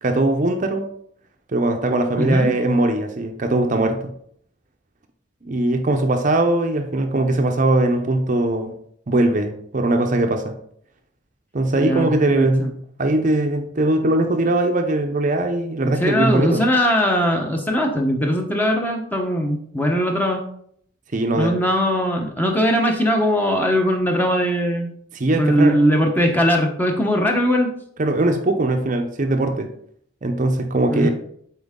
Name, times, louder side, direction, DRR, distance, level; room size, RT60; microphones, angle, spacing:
voice 1, 0.0-0.9 1.5-4.1 5.4-8.7 9.1-10.5 11.5-12.7 13.0-16.6 21.1-21.5 25.1-25.8 28.0-29.7 30.2-31.1, right 2 dB, 40° right, 5 dB, 0.6 m, -20 dB
voice 2, 2.2-2.5 11.7-12.7 16.0-20.4 21.4-24.9 25.4-27.7 30.9-31.1, equal, 10° left, 2 dB, 0.9 m, -20 dB
7.9 x 4.4 x 3.7 m, 0.67 s
head